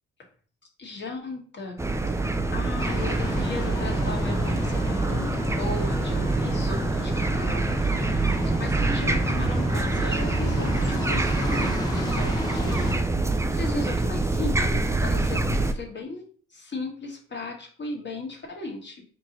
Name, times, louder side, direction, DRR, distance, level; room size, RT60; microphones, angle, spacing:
voice 1, 0.8-1.8 2.1-7.7 8.4-13.0 13.5-15.4 15.7-19.0, left 2 dB, 35° left, 0 dB, 1.4 m, -36 dB
sound 1, 1.8-15.7, right 2 dB, 10° right, 0.4 m, -25 dB
sound 2, 2.8-13.0, left 1 dB, 10° left, 1.1 m, -32 dB
4.4 x 3.0 x 3.9 m, 0.42 s
cardioid pair, 90°, 30 cm